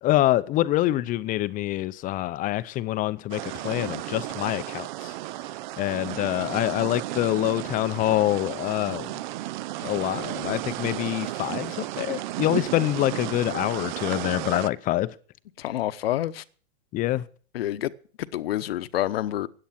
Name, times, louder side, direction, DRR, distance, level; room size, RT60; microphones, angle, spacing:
voice 1, 0.0-5.1 5.8-9.1 9.8-15.1 16.9-17.3, left 15 dB, 25° left, 0.6 m, -26 dB
sound 1, 3.3-14.7, right 16 dB, 45° right, 0.6 m, -33 dB
voice 2, 15.6-16.4 17.5-17.9 18.2-19.5, left 13 dB, 60° left, 1.0 m, -28 dB
16.5 x 10.5 x 5.9 m
hypercardioid pair, 120°, 33 cm